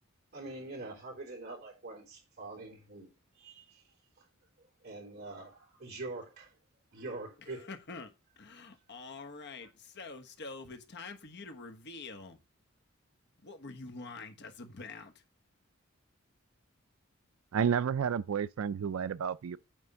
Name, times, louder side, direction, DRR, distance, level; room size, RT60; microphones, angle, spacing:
voice 1, 0.3-3.1 3.4-3.8 4.8-6.5 6.9-7.7 9.6-9.7, right 2 dB, 50° right, 3.5 m, -44 dB
voice 2, 7.4-8.1 8.4-12.4 13.4-15.1, left 3 dB, 55° left, 1.3 m, -46 dB
voice 3, 17.5-19.6, right 7 dB, 80° right, 0.4 m, -31 dB
9.1 x 3.4 x 6.9 m
head